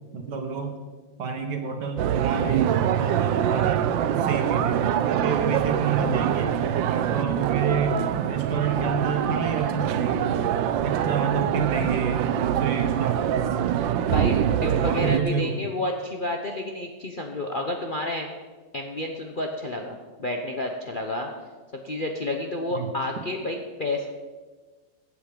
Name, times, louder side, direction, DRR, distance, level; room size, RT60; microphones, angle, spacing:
voice 1, 0.1-0.8 1.2-6.6 6.9-8.0 8.3-10.4 10.8-13.6 14.6-15.7 22.7-23.0, right 5 dB, 65° right, 5 dB, 2.0 m, -29 dB
sound 1, 2.0-15.2, right 10 dB, 85° right, 1.4 m, -24 dB
voice 2, 14.6-18.3 18.7-21.3 21.8-24.1, left 1 dB, 40° left, 2 dB, 0.8 m, -30 dB
15.5 x 8.4 x 5.2 m, 1.3 s
omnidirectional pair, 2.0 m